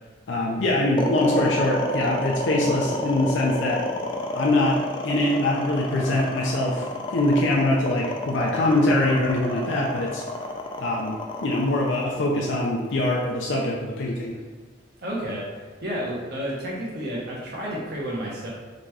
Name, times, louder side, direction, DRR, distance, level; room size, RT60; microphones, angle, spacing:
voice 1, 0.3-3.8 4.3-4.8 5.0-10.2 10.8-14.4, left 1 dB, 80° left, -2 dB, 0.5 m, -23 dB
sound 1, 1.0-13.2, left 2 dB, 25° left, 0.4 m, -30 dB
voice 2, 15.0-15.4 15.8-18.5, equal, 60° right, -5 dB, 1.3 m, -30 dB
3.9 x 3.5 x 3.2 m, 1.4 s
head